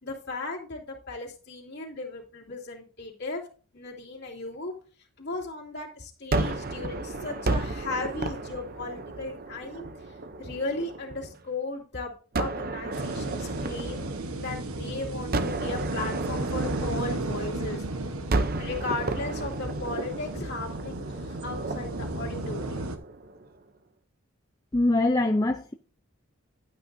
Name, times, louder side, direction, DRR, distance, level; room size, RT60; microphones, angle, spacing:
voice 1, 0.0-3.4 3.7-4.7 5.2-9.9 10.4-12.1 12.4-17.8 18.6-22.9, left 3 dB, 50° left, 2.7 m, -36 dB
Gunshot gunfire, 6.3-11.4 12.3-14.8 15.3-17.8 18.3-23.5, right 2 dB, 45° right, 0.6 m, -33 dB
sound 1, 12.9-23.0, right 2 dB, 90° right, 1.2 m, -34 dB
voice 2, 24.7-25.7, left 2 dB, 15° left, 0.5 m, -23 dB
12.0 x 8.4 x 2.7 m
head